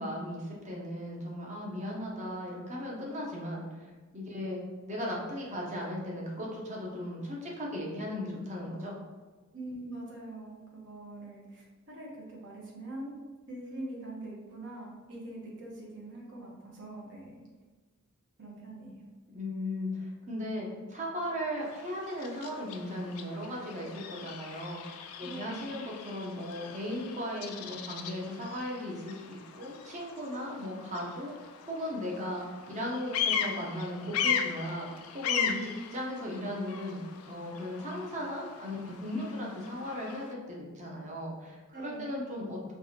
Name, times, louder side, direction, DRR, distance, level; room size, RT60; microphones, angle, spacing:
voice 1, 0.0-3.8 4.1-4.6 4.9-9.0 19.3-32.4 32.7-34.9 35.1-35.5 35.9-42.6, left 1 dB, 35° right, -3 dB, 0.8 m, -37 dB
voice 2, 2.0-2.4 9.5-13.2 13.5-17.4 18.4-19.1 25.2-25.8 35.4-35.9 41.7-42.2, right 2 dB, 60° right, -3 dB, 1.0 m, -43 dB
Bird vocalization bird call bird song, 21.6-40.3, left 8 dB, 80° left, 0.4 m, -38 dB
4.6 x 2.4 x 2.8 m, 1.3 s
head